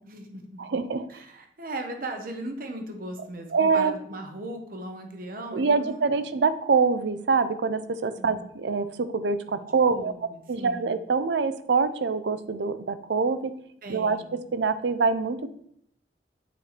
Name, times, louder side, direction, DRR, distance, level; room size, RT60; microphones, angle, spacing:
voice 1, 0.0-0.6 1.1-6.2 8.2-8.5 9.6-10.9 13.8-14.4, right 1 dB, 50° right, 5 dB, 1.0 m, -38 dB
voice 2, 0.6-1.1 3.5-3.9 5.5-10.1 10.5-13.5 13.9-15.5, right 4 dB, 70° right, 12 dB, 0.5 m, -25 dB
8.3 x 3.3 x 4.2 m, 0.71 s
head